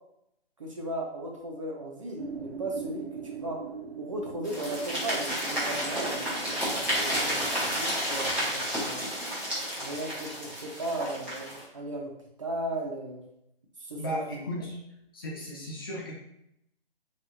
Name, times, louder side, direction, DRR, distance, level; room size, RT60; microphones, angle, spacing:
voice 1, 0.6-3.1 3.3-3.6 4.0-9.0 9.8-12.1 12.4-13.2 13.8-14.2, right 1 dB, 35° right, 0 dB, 0.6 m, -36 dB
sound 1, 2.2-8.4, right 6 dB, 85° right, 0.5 m, -42 dB
sound 2, 4.4-11.6, equal, 5° right, 1.5 m, -31 dB
voice 2, 14.0-14.8 15.1-16.1, equal, 25° left, -4 dB, 0.7 m, -35 dB
5.2 x 3.3 x 2.7 m, 0.79 s
figure-of-eight pair, 140°, 30 cm